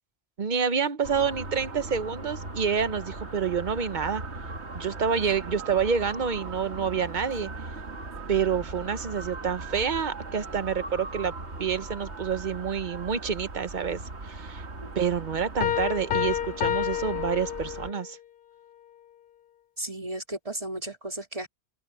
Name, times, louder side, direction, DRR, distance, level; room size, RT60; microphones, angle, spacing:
voice 1, 0.4-4.2 4.7-7.5 8.3-11.3 11.6-14.6 14.9-18.2, right 6 dB, 45° right, 1.0 m, -28 dB
sound 1, 1.0-17.9, right 3 dB, 80° right, 2.4 m, -39 dB
Piano, 15.6-18.1, left 10 dB, 55° left, 0.8 m, -29 dB
voice 2, 19.8-21.5, right 1 dB, 30° right, 4.2 m, -35 dB
open air
omnidirectional pair, 1.1 m